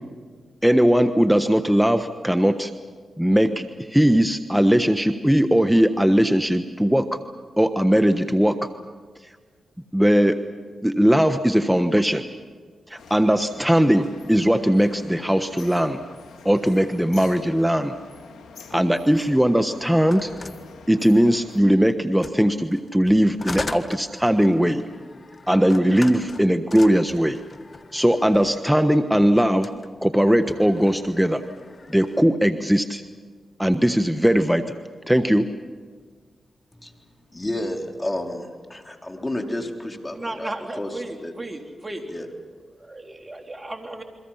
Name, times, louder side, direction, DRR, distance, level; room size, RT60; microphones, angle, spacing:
voice 1, 0.6-2.7 3.2-7.2 7.6-8.6 9.9-10.4 10.8-12.2 12.9-16.0 16.4-17.9 18.7-20.3 20.9-24.8 25.5-27.4 27.9-29.7 30.0-31.4 31.9-33.0 33.6-34.6 35.1-35.5, equal, 5° right, 8 dB, 1.3 m, -19 dB
sound 1, 13.0-21.6, left 5 dB, 80° left, 1.9 m, -46 dB
sound 2, 19.9-21.5 22.1-28.8 29.5-29.9 30.3-32.3, left 3 dB, 45° left, 1.4 m, -40 dB
voice 2, 37.3-40.5 40.8-41.3 42.1-42.3, left 1 dB, 25° left, 3 dB, 3.9 m, -31 dB
voice 3, 40.1-42.1 42.8-44.0, right 1 dB, 30° right, 3 dB, 3.8 m, -35 dB
29.0 x 23.5 x 5.8 m, 1.5 s
supercardioid pair, 40°, 0 cm